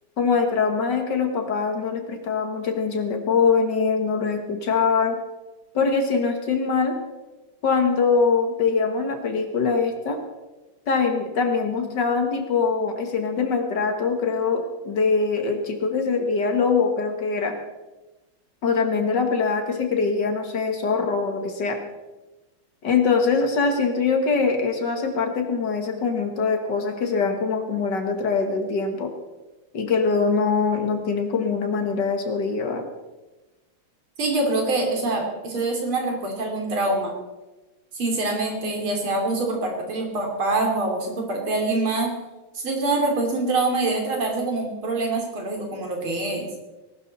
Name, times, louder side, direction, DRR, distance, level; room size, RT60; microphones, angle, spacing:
voice 1, 0.2-5.2 5.7-7.0 7.6-10.2 10.9-17.6 18.6-21.8 22.8-29.1 29.7-32.8, left 5 dB, 55° left, 5 dB, 2.2 m, -23 dB
voice 2, 34.2-37.1 37.9-42.1 42.5-46.5, right 2 dB, 75° right, 1 dB, 3.7 m, -25 dB
19.5 x 12.0 x 4.2 m, 1.1 s
omnidirectional pair, 2.3 m